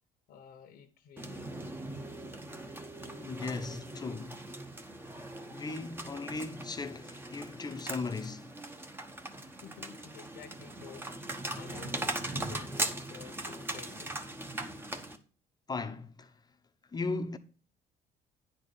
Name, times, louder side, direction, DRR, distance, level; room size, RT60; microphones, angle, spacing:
voice 1, 0.3-1.6 9.5-14.2, left 8 dB, 65° left, 1.0 m, -52 dB
sound 1, 1.2-15.2, right 1 dB, 15° right, 1.0 m, -40 dB
voice 2, 3.2-4.4 5.5-8.5 15.7-16.3 16.9-17.4, left 3 dB, 25° left, 0.8 m, -37 dB
9.6 x 4.3 x 6.5 m
cardioid pair, 110°, 17 cm